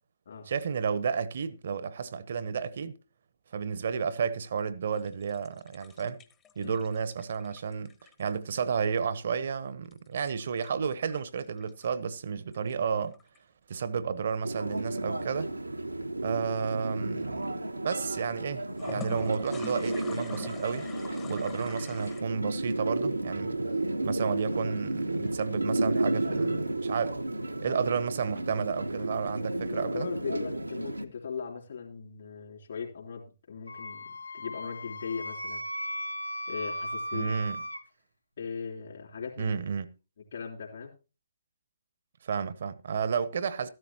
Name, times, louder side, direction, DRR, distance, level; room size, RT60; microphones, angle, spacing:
voice 1, 0.5-3.0 3.5-6.2 6.6-7.9 8.2-13.2 13.7-15.5 16.2-17.5 17.8-20.9 21.3-23.6 24.0-27.2 27.6-30.1 37.1-37.6 39.4-39.9 42.2-43.7, right 6 dB, 50° right, 0.9 m, -32 dB
sound 1, 4.9-8.5 9.8-11.9 12.5-13.4 18.7-22.2, left 8 dB, 20° left, 1.0 m, -46 dB
sound 2, 14.4-31.1, right 2 dB, 85° right, 0.9 m, -32 dB
voice 2, 29.7-35.6 36.5-37.4 38.4-39.6 40.3-40.9, left 6 dB, 55° left, 3.3 m, -38 dB
Wind instrument woodwind instrument, 33.7-37.8, equal, 85° left, 1.1 m, -37 dB
14.0 x 12.5 x 2.9 m
figure-of-eight pair, 130°, 0 cm